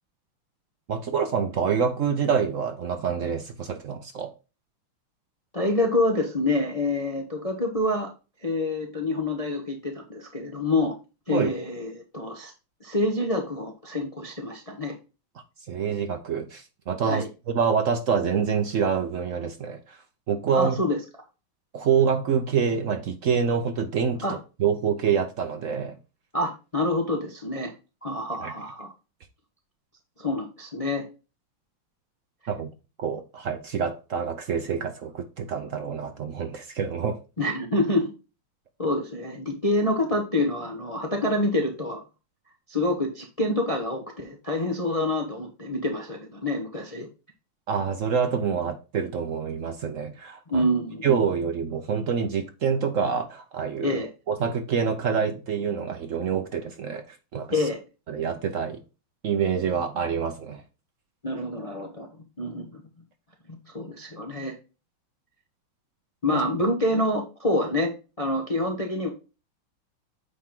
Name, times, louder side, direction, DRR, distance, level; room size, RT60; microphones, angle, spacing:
voice 1, 0.9-4.3 11.3-11.5 15.7-20.0 20.3-20.8 21.7-26.0 28.4-28.5 32.5-32.7 33.0-37.2 47.7-50.7 51.0-54.0 54.3-57.7 58.1-58.8 59.2-60.6 66.3-66.4, right 6 dB, 75° right, 0.7 m, -26 dB
voice 2, 5.5-8.1 8.4-10.9 11.3-12.5 12.8-14.9 17.1-17.3 20.5-21.0 24.2-24.4 26.3-27.7 28.0-28.9 30.2-31.1 37.4-38.1 38.8-42.0 42.7-47.1 50.5-51.0 53.8-54.1 57.5-57.8 61.2-62.1 62.4-62.8 63.5-64.5 66.2-67.9 68.2-69.1, left 1 dB, 25° left, 0.7 m, -27 dB
8.4 x 4.4 x 3.7 m
omnidirectional pair, 2.4 m